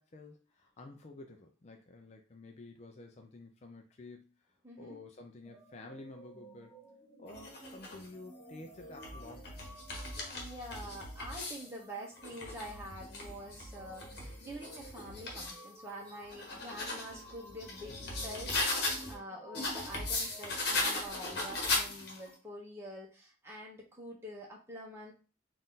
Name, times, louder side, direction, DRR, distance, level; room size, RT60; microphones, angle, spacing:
voice 1, 0.0-6.7 7.2-9.6 17.9-18.2, left 2 dB, 35° left, 4 dB, 0.4 m, -51 dB
voice 2, 4.6-5.0 10.3-25.1, equal, 15° right, -3 dB, 1.0 m, -46 dB
sound 1, 5.4-21.1, right 1 dB, 10° left, 1.7 m, -55 dB
sound 2, 7.3-8.1 8.8-11.7 12.2-15.6 16.1-19.1 19.5-22.3, left 2 dB, 55° left, 1.1 m, -37 dB
3.9 x 2.5 x 3.9 m, 0.34 s
head